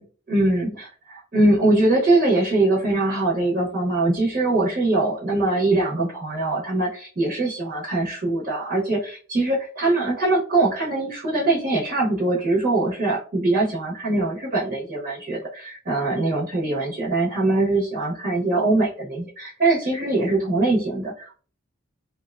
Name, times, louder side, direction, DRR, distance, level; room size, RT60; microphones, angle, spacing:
voice 1, 0.3-21.3, right 2 dB, 40° right, -5 dB, 0.7 m, -22 dB
2.7 x 2.1 x 2.3 m, 0.40 s
head